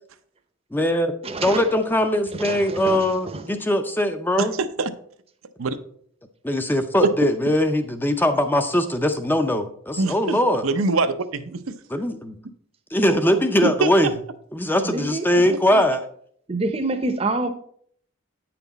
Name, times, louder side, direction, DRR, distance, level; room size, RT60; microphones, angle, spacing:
voice 1, 0.7-1.1 1.4-4.5 6.4-10.7 11.9-12.4 12.9-14.1 14.5-16.0, left 1 dB, 10° left, 0.5 m, -21 dB
voice 2, 1.2-1.7 2.3-3.6 14.8-15.4 16.5-17.5, right 2 dB, 30° right, 0.7 m, -27 dB
voice 3, 4.4-4.9 5.6-5.8 7.0-7.1 10.0-11.7 13.6-13.9 15.7-15.8, right 3 dB, 80° right, 0.6 m, -24 dB
9.2 x 5.9 x 4.0 m
head